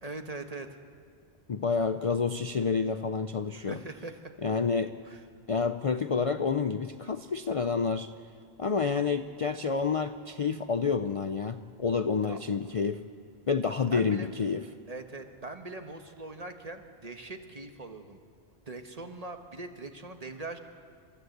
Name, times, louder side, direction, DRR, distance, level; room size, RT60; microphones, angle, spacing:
voice 1, 0.0-0.7 3.7-4.3 5.0-5.2 12.2-12.4 13.9-14.3 14.9-18.2 18.7-20.6, right 2 dB, 35° right, 6 dB, 1.4 m, -41 dB
voice 2, 1.5-3.8 4.4-4.9 5.5-8.1 8.6-13.0 13.5-14.6, left 5 dB, 40° left, 9 dB, 0.5 m, -29 dB
29.0 x 13.0 x 8.0 m, 2.1 s
omnidirectional pair, 1.1 m